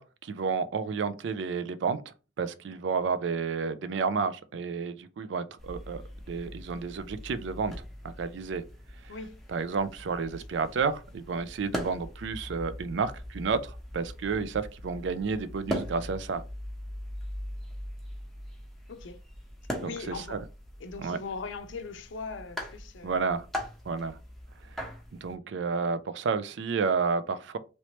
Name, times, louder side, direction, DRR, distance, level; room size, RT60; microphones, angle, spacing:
voice 1, 0.0-6.0 6.3-7.8 8.0-8.6 9.0-9.1 9.5-16.4 19.8-20.4 21.0-21.2 23.0-23.5 23.9-24.2 24.6-24.8 25.2-27.6, right 5 dB, 70° right, 0.4 m, -31 dB
sound 1, 5.6-25.3, equal, ahead, 0.7 m, -41 dB
voice 2, 9.1-9.4 18.9-19.2 19.8-20.4 20.8-23.2, left 4 dB, 75° left, 0.5 m, -39 dB
3.0 x 3.0 x 2.9 m
head